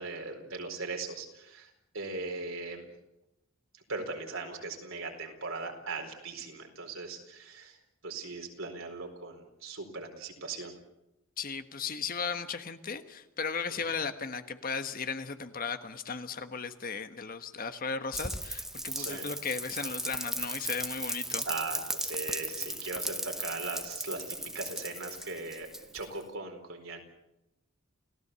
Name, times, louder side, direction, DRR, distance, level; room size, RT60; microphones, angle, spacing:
voice 1, 0.0-2.9 3.7-7.8 8.0-10.7 13.7-13.8 18.9-19.3 21.4-25.7 25.9-27.0, right 3 dB, 70° right, 3 dB, 4.5 m, -39 dB
voice 2, 11.4-21.4, left 5 dB, 40° left, 9 dB, 1.3 m, -36 dB
Rain, 18.1-26.2, right 1 dB, ahead, 1.0 m, -36 dB
29.5 x 17.0 x 7.0 m, 0.92 s
head